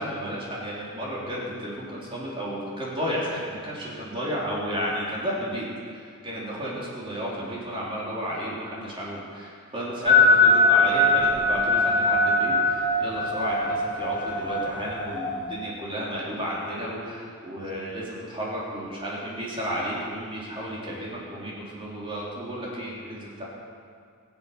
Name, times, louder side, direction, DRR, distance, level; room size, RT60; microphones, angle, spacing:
voice 1, 0.0-5.7 5.9-23.4, equal, 25° right, -6 dB, 3.7 m, -32 dB
sound 1, 10.0-15.4, left 2 dB, 20° left, 1.4 m, -21 dB
23.0 x 8.4 x 5.7 m, 2.2 s
head